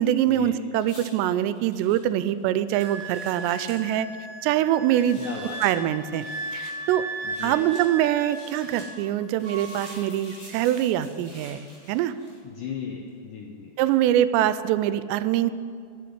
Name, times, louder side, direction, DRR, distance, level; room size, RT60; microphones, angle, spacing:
voice 1, 0.0-4.1 4.4-5.2 5.6-6.3 6.5-7.1 7.4-12.1 13.8-15.5, right 12 dB, 85° right, 13 dB, 2.7 m, -24 dB
sound 1, 0.8-3.8 4.8-5.7 6.1-6.7 7.2-7.8 8.2-8.9 9.4-12.6 13.8-13.9, left 1 dB, 45° left, 5.2 m, -48 dB
Wind instrument woodwind instrument, 2.7-9.1 9.4-10.0, right 2 dB, 55° right, 0.8 m, -37 dB
voice 2, 5.2-5.6 7.2-7.6 12.4-13.7, left 6 dB, 85° left, 0 dB, 1.8 m, -36 dB
11.0 x 7.0 x 9.4 m, 2.2 s
omnidirectional pair, 4.9 m